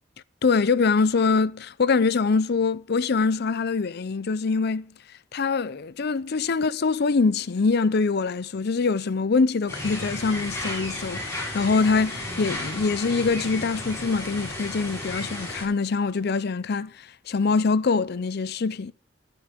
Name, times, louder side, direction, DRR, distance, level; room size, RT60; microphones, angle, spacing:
voice 1, 0.4-4.9 5.3-18.9, left 4 dB, 60° left, 0.5 m, -24 dB
sound 1, 9.7-15.6, left 1 dB, 15° left, 7.7 m, -33 dB
12.0 x 9.7 x 5.9 m
head